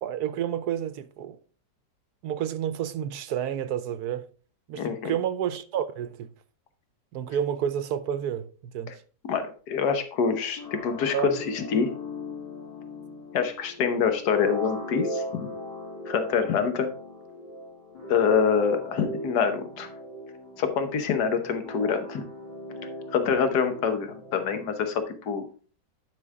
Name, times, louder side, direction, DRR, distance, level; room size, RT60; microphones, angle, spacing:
voice 1, 0.0-1.4 2.2-4.2 4.7-6.3 7.1-9.0 11.1-11.4, right 9 dB, 70° right, 1.1 m, -30 dB
voice 2, 4.8-5.1 9.3-12.0 13.3-15.5 16.1-16.9 18.1-19.9 20.6-22.2 23.1-25.4, left 6 dB, 70° left, 1.6 m, -26 dB
sound 1, 10.6-25.1, left 1 dB, 90° left, 3.5 m, -39 dB
10.5 x 5.8 x 3.6 m
omnidirectional pair, 1.8 m